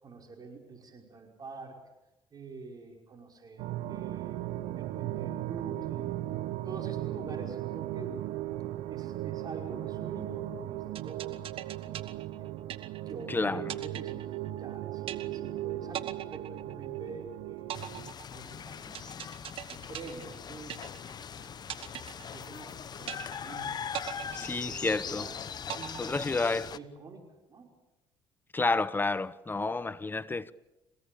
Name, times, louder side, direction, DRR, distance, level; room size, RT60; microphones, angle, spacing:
voice 1, 0.0-1.8 2.3-4.5 4.8-6.2 6.6-8.1 8.9-11.5 11.8-12.5 13.0-17.7 18.3-19.2 19.7-20.8 21.4-21.7 22.1-23.8 24.3-27.2 27.5-27.7, right 4 dB, 40° right, 5.5 m, -46 dB
sound 1, 3.6-18.1, right 14 dB, 80° right, 0.9 m, -37 dB
sound 2, 11.0-13.3 13.7-14.7 15.1-15.6 15.9-17.2 17.7-21.3 21.7-22.7 23.1-23.6 23.9-25.2 25.7-26.7, right 11 dB, 60° right, 1.5 m, -41 dB
voice 2, 13.3-13.6 24.3-25.3 26.0-26.7 28.5-30.5, left 3 dB, 20° left, 0.9 m, -30 dB
sound 3, 17.7-26.8, left 7 dB, 40° left, 1.1 m, -41 dB
27.5 x 17.0 x 8.6 m
supercardioid pair, 90°, 10 cm